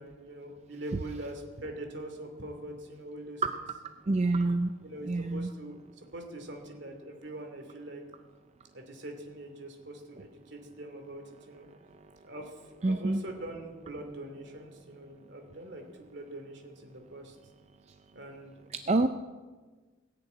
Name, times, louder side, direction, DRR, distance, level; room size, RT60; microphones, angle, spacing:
voice 1, 0.0-3.6 4.8-8.0 8.7-11.7 12.2-17.4 18.1-18.7, right 1 dB, 55° right, 4 dB, 2.6 m, -43 dB
voice 2, 4.1-4.7 5.1-5.5 12.8-13.2 18.7-19.1, right 2 dB, 35° right, 9 dB, 0.4 m, -27 dB
19.5 x 6.9 x 8.9 m, 1.4 s
head